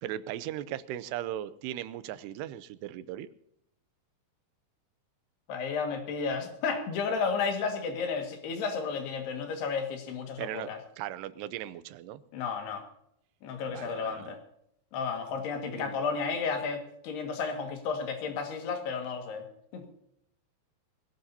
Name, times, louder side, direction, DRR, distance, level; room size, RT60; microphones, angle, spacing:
voice 1, 0.0-3.3 10.4-12.2 13.7-14.4 15.7-16.0, right 12 dB, 90° right, 15 dB, 2.8 m, -38 dB
voice 2, 5.5-10.8 12.3-12.8 13.4-14.4 14.9-19.5 19.7-19.8, left 5 dB, 80° left, 4 dB, 4.0 m, -32 dB
22.5 x 16.5 x 2.8 m, 0.75 s
omnidirectional pair, 4.7 m